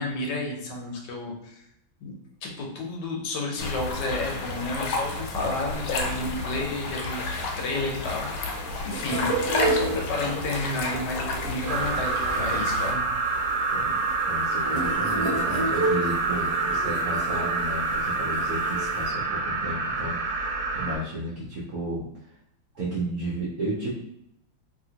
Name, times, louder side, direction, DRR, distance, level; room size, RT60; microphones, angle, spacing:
voice 1, 0.0-1.6 2.0-2.1 2.4-13.1 13.3-13.5, left 2 dB, 70° left, 1 dB, 1.3 m, -32 dB
sound 1, 3.6-12.9, left 3 dB, 90° left, 1.5 m, -31 dB
sound 2, 7.2-19.1, right 2 dB, 40° right, 1.0 m, -33 dB
voice 2, 9.0-9.3 13.7-13.9 14.3-22.1 22.7-23.9, right 1 dB, 70° right, -7 dB, 0.7 m, -33 dB
sound 3, 11.7-21.0, right 3 dB, 90° right, 1.4 m, -27 dB
2.9 x 2.8 x 2.8 m, 0.76 s
omnidirectional pair, 2.1 m